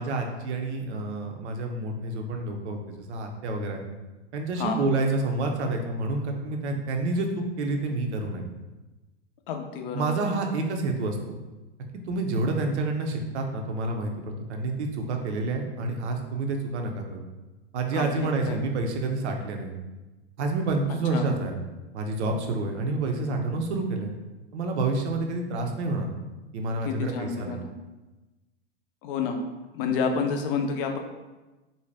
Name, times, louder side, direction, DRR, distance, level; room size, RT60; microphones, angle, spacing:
voice 1, 0.0-3.8 4.3-8.5 9.9-11.4 11.9-17.2 17.7-19.7 20.4-21.6 21.9-24.1 24.5-26.1 26.5-27.6, right 2 dB, 75° right, 3 dB, 0.6 m, -28 dB
voice 2, 9.5-10.2 17.9-18.6 21.1-21.3 26.8-27.7 29.0-29.4 29.7-31.0, left 5 dB, 55° left, 4 dB, 0.5 m, -29 dB
2.6 x 2.1 x 3.2 m, 1.1 s
hypercardioid pair, 115°, 34 cm